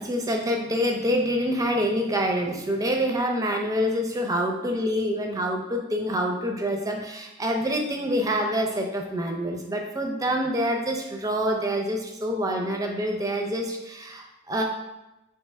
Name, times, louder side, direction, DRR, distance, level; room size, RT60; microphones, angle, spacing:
voice 1, 0.0-14.6, equal, 15° right, 2 dB, 0.5 m, -26 dB
3.3 x 3.2 x 3.4 m, 0.96 s
head